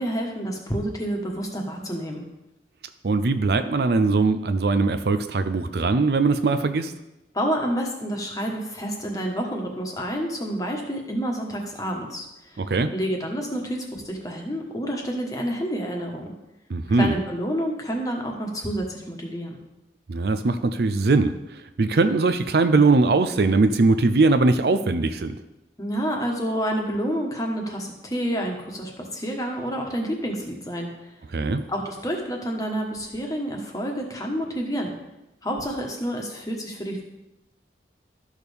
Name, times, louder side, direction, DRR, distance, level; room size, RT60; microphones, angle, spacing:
voice 1, 0.0-2.2 7.3-16.3 16.9-19.6 25.8-31.1 31.7-34.9 35.4-37.0, equal, 20° left, 1 dB, 1.3 m, -29 dB
voice 2, 3.0-6.9 12.6-12.9 16.7-17.2 20.1-25.4 31.3-31.6, right 3 dB, 60° right, 10 dB, 0.5 m, -21 dB
12.5 x 6.4 x 3.5 m, 0.94 s
head